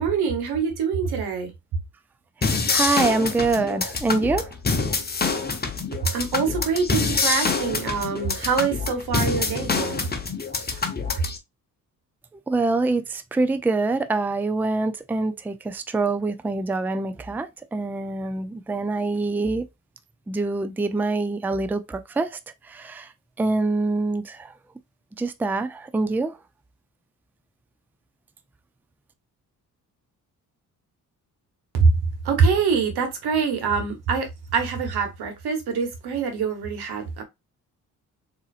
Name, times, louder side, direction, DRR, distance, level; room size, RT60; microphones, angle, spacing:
voice 1, 0.0-1.5 6.1-10.1 31.8-31.9 32.2-34.3 34.5-37.2, right 5 dB, 80° right, 1.2 m, -24 dB
sound 1, 2.4-11.4, left 4 dB, 25° left, 0.9 m, -26 dB
voice 2, 2.4-4.5 12.5-19.6 20.3-23.1 23.4-24.5 25.2-26.4, right 3 dB, 5° right, 0.4 m, -25 dB
3.9 x 2.8 x 2.4 m
supercardioid pair, 60°, 38 cm